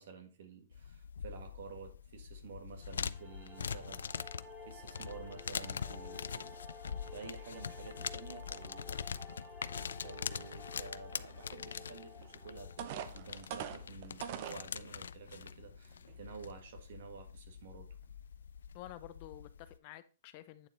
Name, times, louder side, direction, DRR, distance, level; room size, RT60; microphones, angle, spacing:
voice 1, 0.0-4.1 4.6-6.6 7.1-9.0 10.0-18.0, right 5 dB, 65° right, 1.8 m, -51 dB
sound 1, 0.7-19.8, left 7 dB, 90° left, 0.3 m, -44 dB
sound 2, 2.8-13.8, left 2 dB, 5° right, 2.1 m, -53 dB
sound 3, 12.2-12.3 12.8-14.6 15.3-15.4 15.9-16.1, right 9 dB, 45° right, 0.7 m, -42 dB
voice 2, 18.7-20.7, left 14 dB, 40° left, 0.6 m, -50 dB
8.9 x 4.1 x 4.1 m
hypercardioid pair, 145°, 0 cm